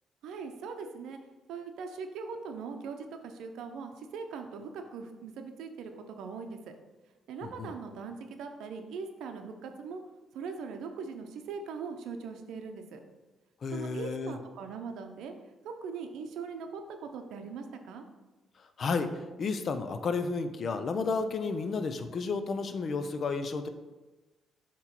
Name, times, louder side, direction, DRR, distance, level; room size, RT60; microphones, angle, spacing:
voice 1, 0.2-1.2 1.5-6.7 7.3-10.0 10.3-13.0 13.7-15.3 15.6-18.0, right 5 dB, 85° right, 6 dB, 0.6 m, -40 dB
voice 2, 7.4-7.7 13.6-14.4 18.8-19.1 19.4-23.7, left 4 dB, 50° left, 9 dB, 0.5 m, -32 dB
7.7 x 3.0 x 4.4 m, 1.2 s
cardioid pair, 90°, 0 cm